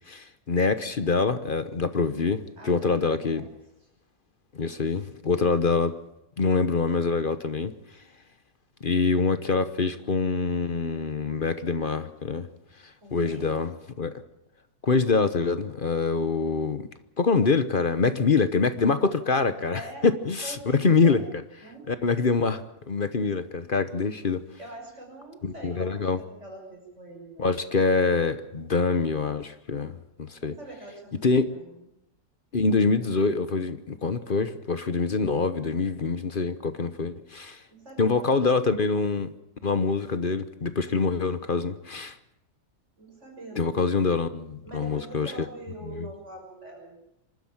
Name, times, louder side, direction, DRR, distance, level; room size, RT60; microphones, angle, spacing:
voice 1, 0.1-3.5 4.5-6.0 6.4-7.7 8.8-12.5 13.1-14.2 14.8-16.8 17.2-21.2 21.9-24.4 25.4-26.2 27.4-29.9 30.2-30.5 31.2-31.5 32.5-37.6 38.0-39.3 39.6-42.1 43.6-45.3 45.9-46.1, left 4 dB, 40° left, 11 dB, 1.0 m, -25 dB
voice 2, 2.6-3.5 13.0-13.4 19.7-20.1 20.4-21.2 21.6-21.9 24.6-27.8 30.4-31.2 31.5-31.8 37.7-38.6 43.0-43.8 44.6-47.0, right 2 dB, 45° right, 0 dB, 6.4 m, -44 dB
26.0 x 12.5 x 8.8 m, 0.84 s
omnidirectional pair, 1.7 m